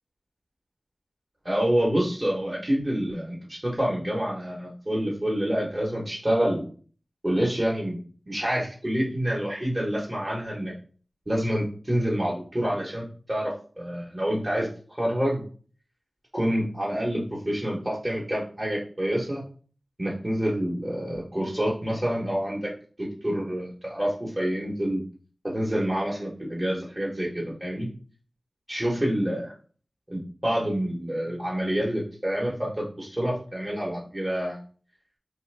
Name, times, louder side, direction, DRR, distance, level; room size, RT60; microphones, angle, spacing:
voice 1, 1.4-6.6 7.2-8.0 8.3-10.7 11.3-14.7 15.0-15.4 16.3-19.4 20.0-22.7 23.0-25.0 25.4-27.9 28.7-29.5 30.1-34.6, equal, 35° right, -6 dB, 0.9 m, -27 dB
3.2 x 2.1 x 3.2 m, 0.42 s
wide cardioid pair, 45°, 0 cm